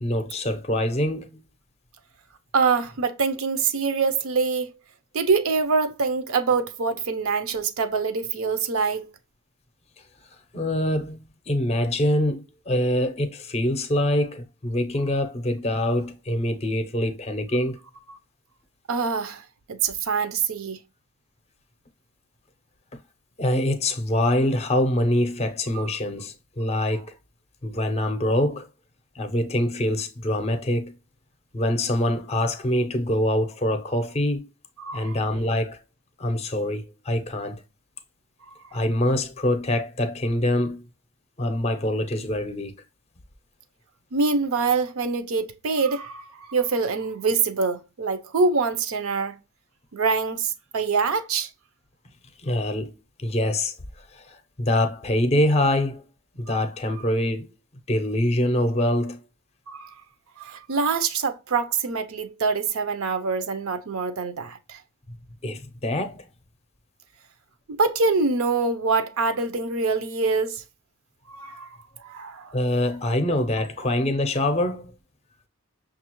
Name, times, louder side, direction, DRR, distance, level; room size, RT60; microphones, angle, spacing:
voice 1, 0.0-1.4 10.5-17.8 23.4-27.1 27.6-28.7 29.2-30.9 31.5-34.5 34.9-35.8 36.2-37.6 38.7-40.8 41.4-42.8 52.4-52.9 53.2-53.7 54.1-56.1 56.4-57.5 57.9-59.2 65.4-66.2 72.5-74.9, left 1 dB, 30° left, 0.5 m, -24 dB
voice 2, 2.5-4.7 5.1-9.1 18.9-19.4 19.7-20.8 25.7-25.9 34.8-35.2 38.5-38.6 44.1-49.4 49.9-51.5 59.7-59.9 60.4-64.8 67.7-70.6 71.3-72.5, right 4 dB, 75° right, 0.5 m, -25 dB
6.1 x 2.4 x 2.9 m
head